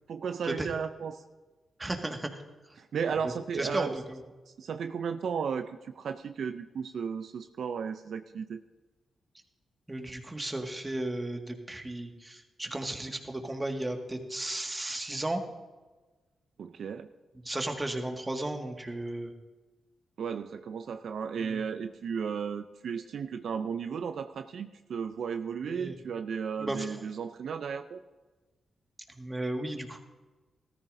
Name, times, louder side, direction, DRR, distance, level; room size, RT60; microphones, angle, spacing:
voice 1, 0.1-1.2 2.8-4.0 4.6-8.6 16.6-17.1 20.2-28.0, right 6 dB, 70° right, 9 dB, 0.5 m, -34 dB
voice 2, 1.8-2.3 3.5-4.2 9.9-15.4 17.5-19.3 21.4-21.6 25.6-25.9 26.6-27.0 29.2-30.0, right 1 dB, 20° right, 3 dB, 1.9 m, -34 dB
14.0 x 14.0 x 2.7 m, 1.2 s
supercardioid pair, 55°, 0 cm